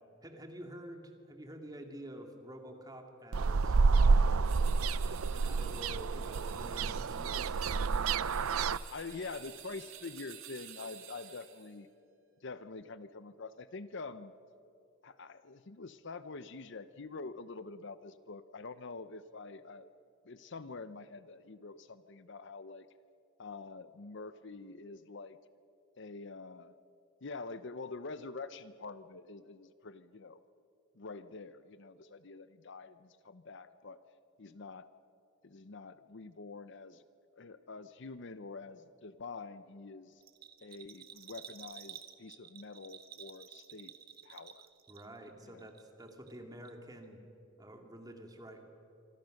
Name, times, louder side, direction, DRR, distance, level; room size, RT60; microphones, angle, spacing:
voice 1, 0.2-4.5 4.9-7.6 44.9-47.2 47.6-48.7, right 1 dB, 20° right, 4 dB, 2.3 m, -49 dB
sound 1, 3.3-8.8, right 4 dB, 90° right, 0.6 m, -29 dB
sound 2, 4.4-11.7, right 10 dB, 70° right, 2.3 m, -51 dB
voice 2, 8.9-11.9 12.4-14.3 15.0-19.9 20.2-22.9 23.4-25.4 26.0-26.7 27.2-30.4 30.9-34.0 34.4-34.9 35.4-37.0 37.3-40.2 40.6-43.9 44.2-44.6 45.4-45.7, left 3 dB, 60° left, 13 dB, 0.7 m, -46 dB
Bell, 40.2-45.3 45.6-46.4 46.7-46.8, right 9 dB, 45° right, 1.3 m, -51 dB
25.5 x 25.5 x 6.5 m, 2.7 s
head